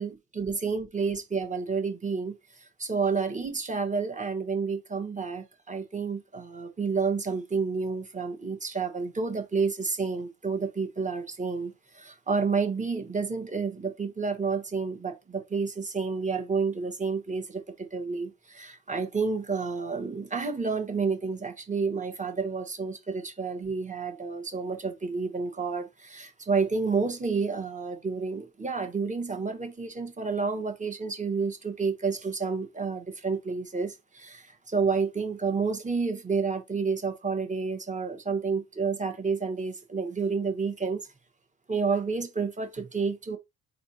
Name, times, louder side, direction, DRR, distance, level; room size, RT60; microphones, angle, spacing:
voice 1, 0.0-41.0 41.7-43.4, right 4 dB, 25° right, 1.4 m, -30 dB
4.2 x 4.1 x 2.8 m
cardioid pair, 90°, 30 cm